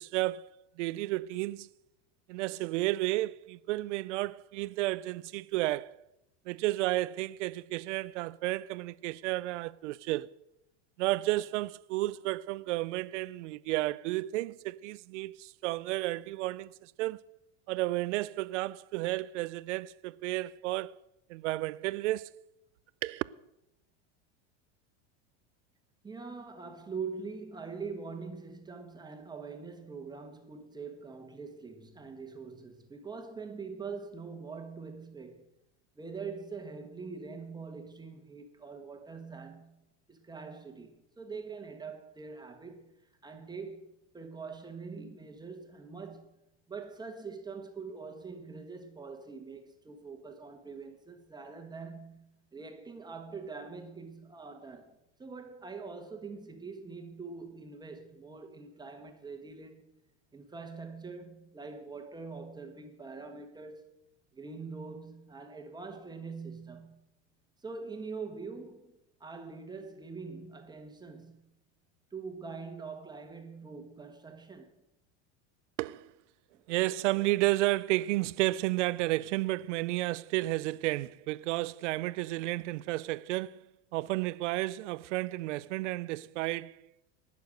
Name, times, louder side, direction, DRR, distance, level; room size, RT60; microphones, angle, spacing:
voice 1, 0.0-1.7 2.3-6.0 6.5-10.3 11.0-17.2 17.7-20.9 21.3-22.3 23.0-23.2 75.8-76.1 76.7-83.6 83.9-86.8, right 18 dB, 85° right, 0.5 m, -32 dB
voice 2, 26.0-35.5 35.9-39.8 40.1-42.9 43.2-46.4 46.7-59.8 60.3-63.9 64.3-67.0 67.6-68.9 69.2-71.5 72.1-74.7, right 4 dB, 10° right, 1.4 m, -43 dB
19.0 x 6.9 x 6.4 m
supercardioid pair, 135°, 35 cm